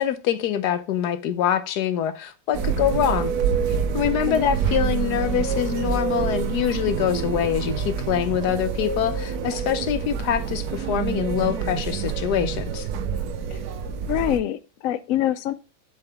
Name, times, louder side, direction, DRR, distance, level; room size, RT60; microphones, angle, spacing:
voice 1, 0.0-3.3 3.7-12.9, left 10 dB, 65° left, 1.2 m, -25 dB
sound 1, 2.5-14.4, right 7 dB, 65° right, 1.1 m, -27 dB
voice 2, 4.0-4.4 13.5-13.6 14.1-15.5, left 12 dB, 85° left, 0.7 m, -25 dB
7.4 x 5.0 x 3.4 m
omnidirectional pair, 2.0 m